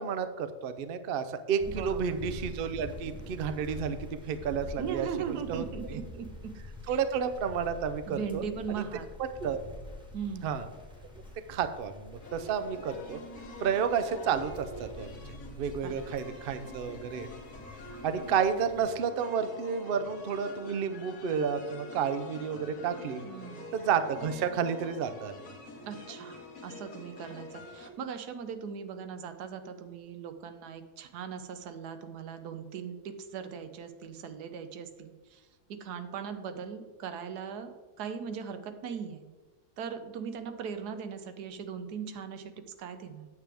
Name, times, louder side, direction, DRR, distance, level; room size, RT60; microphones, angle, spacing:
voice 1, 0.0-5.6 5.9-6.0 6.9-8.4 9.4-9.6 10.4-10.7 11.5-13.2 13.6-15.1 15.6-17.3 18.0-23.2 23.7-25.4, right 7 dB, 70° right, 10 dB, 0.5 m, -31 dB
sound 1, 1.6-18.8, left 1 dB, 5° right, 1.1 m, -46 dB
voice 2, 1.6-2.2 4.8-6.5 6.9-7.0 8.1-9.1 10.1-10.6 15.8-15.9 23.2-23.7 25.8-39.2 39.8-43.3, right 7 dB, 90° right, 9 dB, 1.3 m, -39 dB
sound 2, 12.2-27.9, left 1 dB, 75° left, 1.8 m, -46 dB
9.3 x 7.5 x 3.4 m, 1.3 s
omnidirectional pair, 1.7 m